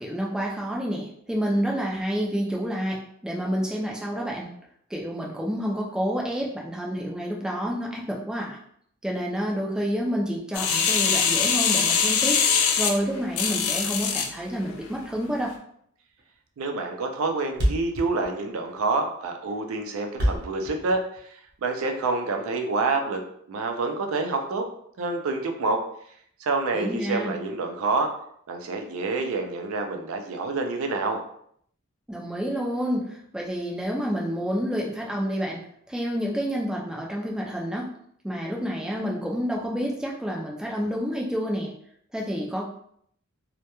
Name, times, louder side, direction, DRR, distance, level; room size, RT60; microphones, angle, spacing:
voice 1, 0.0-4.5 4.9-8.6 9.0-15.5 26.7-27.3 32.1-37.9 38.2-41.7 42.1-42.6, equal, 5° right, -2 dB, 0.3 m, -29 dB
sound 1, 10.5-14.3 14.9-15.0, left 6 dB, 85° left, 0.4 m, -23 dB
Thump thud, 16.2-16.4 16.6-16.7 17.0-17.1 17.3-17.4 17.5-21.6, equal, 55° right, 0.8 m, -28 dB
voice 2, 16.6-23.2 23.5-24.7 25.0-25.8 26.4-28.1 28.5-31.2, right 3 dB, 85° right, 3 dB, 0.4 m, -27 dB
2.2 x 2.1 x 2.9 m, 0.67 s
head